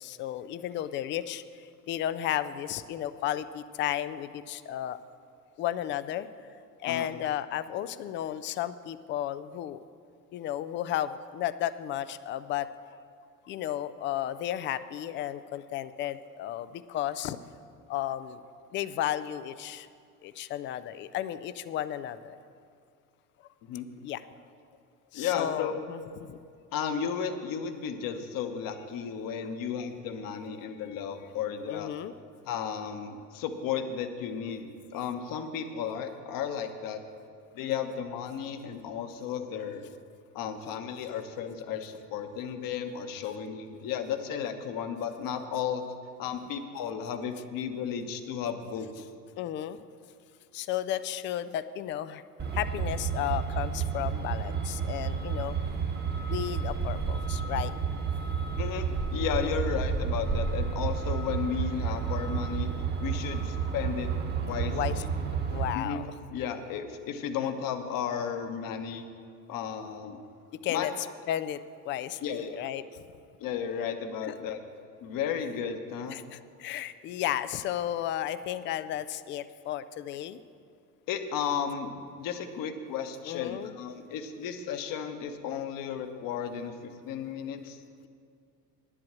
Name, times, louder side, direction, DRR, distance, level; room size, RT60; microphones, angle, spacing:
voice 1, 0.0-5.0 5.6-6.3 6.8-9.8 10.3-12.7 13.4-17.4 17.9-18.4 18.7-19.9 20.2-22.4 24.0-24.2 25.1-26.0 26.3-26.4 30.9-31.0 31.7-32.1 49.4-49.8 50.5-52.2 52.5-55.6 56.3-57.7 64.7-65.0 65.5-66.1 70.6-70.9 71.3-71.6 71.9-72.2 72.6-73.0 74.2-74.3 76.1-80.4 83.3-83.7, left 12 dB, 25° left, 14 dB, 0.3 m, -33 dB
voice 2, 25.1-25.8 26.7-31.9 32.5-37.0 37.5-39.9 40.3-49.1 58.6-62.7 63.0-64.1 64.4-65.1 65.7-66.0 66.3-69.1 69.5-70.2 70.7-70.9 72.2-72.6 73.4-74.6 75.0-76.2 81.1-87.8, left 7 dB, 45° left, 8 dB, 1.1 m, -34 dB
Truck, 52.4-65.8, right 6 dB, 20° right, 1.1 m, -31 dB
10.5 x 7.9 x 7.5 m, 2.3 s
hypercardioid pair, 80°, 47 cm